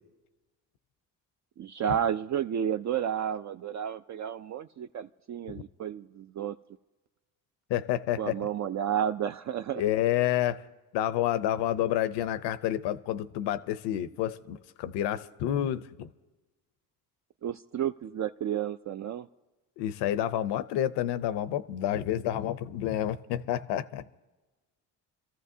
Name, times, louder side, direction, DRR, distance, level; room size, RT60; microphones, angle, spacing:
voice 1, 1.6-6.6 8.2-9.8 17.4-19.3, right 9 dB, 45° right, 0.5 m, -31 dB
voice 2, 7.7-8.4 9.7-10.6 10.9-16.1 19.8-24.0, left 12 dB, 85° left, 0.8 m, -29 dB
27.5 x 14.5 x 2.8 m
supercardioid pair, 75°, 40 cm